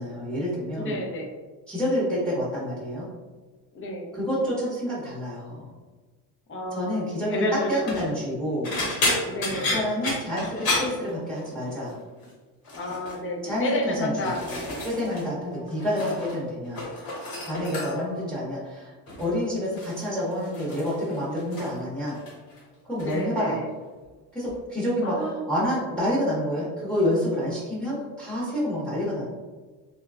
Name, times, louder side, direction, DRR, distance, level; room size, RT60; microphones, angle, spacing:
voice 1, 0.0-1.0 1.7-3.1 4.1-5.6 6.7-7.4 7.7-8.7 9.6-11.9 13.4-14.3 14.8-16.8 17.4-22.2 22.9-23.6 24.3-29.3, equal, ahead, -7 dB, 0.9 m, -28 dB
voice 2, 0.8-1.3 3.7-4.2 6.5-8.0 9.2-9.7 12.7-14.4 15.2-15.8 17.7-18.3 23.0-23.7 25.0-25.4, left 1 dB, 30° left, 0 dB, 0.5 m, -31 dB
sound 1, 7.7-8.1 8.6-11.7 11.9-12.3 12.6-13.2 13.8-15.3 15.5-16.4 16.6-18.2 19.1-19.3 19.8-21.8 22.1-22.6 23.0-23.2 24.5-24.6, left 2 dB, 55° left, 1.1 m, -31 dB
3.0 x 2.2 x 2.3 m, 1.3 s
cardioid pair, 110°, 42 cm